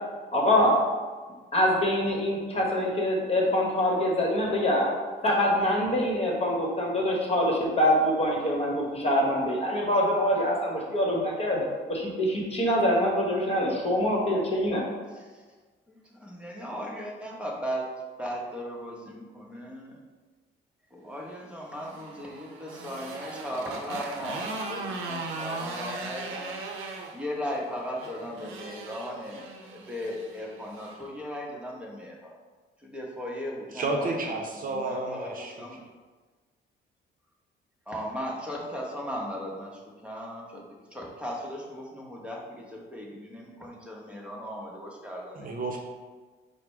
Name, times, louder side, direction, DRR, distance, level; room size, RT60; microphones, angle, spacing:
voice 1, 0.3-0.8 1.5-4.9 5.2-14.8, left 1 dB, 30° left, -2 dB, 1.2 m, -25 dB
voice 2, 15.9-17.9 18.2-20.0 20.9-26.5 27.1-32.3 32.8-34.3 34.7-35.3 35.6-35.8 37.9-39.7 40.0-40.6 40.9-45.5, equal, 5° right, -2 dB, 0.9 m, -37 dB
Motorcycle, 21.6-31.0, right 3 dB, 90° right, 0.6 m, -38 dB
voice 3, 33.7-35.7 45.3-45.8, right 2 dB, 45° right, 1 dB, 0.6 m, -31 dB
4.9 x 2.1 x 4.6 m, 1.4 s
cardioid pair, 90°, 20 cm